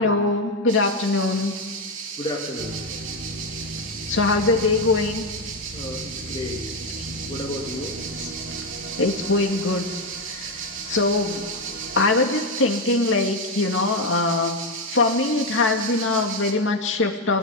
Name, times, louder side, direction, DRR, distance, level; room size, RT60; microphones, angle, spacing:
voice 1, 0.0-1.6 4.1-5.2 9.0-9.9 10.3-10.5 10.9-11.4 12.0-14.6 14.9-17.4, left 3 dB, 75° left, 3 dB, 2.4 m, -22 dB
sound 1, 0.7-16.5, right 6 dB, 85° right, 3.0 m, -35 dB
voice 2, 2.2-2.8 5.7-6.7 7.3-8.0, left 1 dB, 25° left, -2 dB, 2.9 m, -32 dB
sound 2, 2.6-12.0, right 1 dB, 55° right, 1.6 m, -37 dB
24.5 x 18.0 x 9.9 m, 1.5 s
head